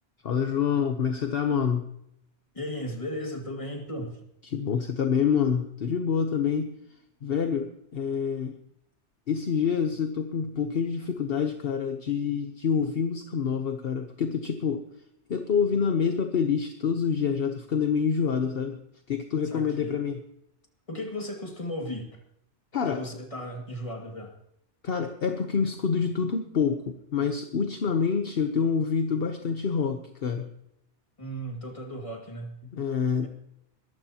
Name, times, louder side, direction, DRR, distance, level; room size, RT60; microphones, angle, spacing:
voice 1, 0.2-1.9 4.4-6.7 7.2-8.6 9.3-14.8 15.3-18.8 19.1-20.2 22.7-23.0 24.8-30.5 32.7-33.3, left 6 dB, 55° left, 6 dB, 1.1 m, -27 dB
voice 2, 2.5-4.2 19.4-20.0 20.9-22.1 22.9-24.3 31.2-32.5, equal, 30° left, 1 dB, 2.4 m, -35 dB
21.5 x 14.0 x 2.9 m, 0.77 s
omnidirectional pair, 1.2 m